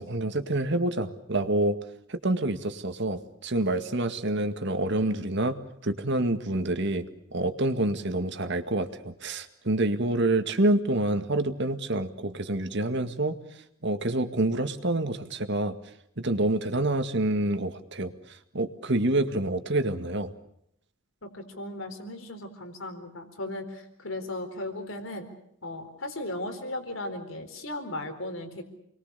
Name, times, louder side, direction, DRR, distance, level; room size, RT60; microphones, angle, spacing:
voice 1, 0.0-1.8 2.1-5.6 5.8-13.4 13.8-15.8 16.2-18.1 18.5-20.3, right 1 dB, 60° right, 8 dB, 2.0 m, -27 dB
voice 2, 21.2-25.3 25.6-28.6, left 1 dB, 80° left, 7 dB, 4.1 m, -36 dB
29.0 x 21.5 x 6.8 m, 0.74 s
head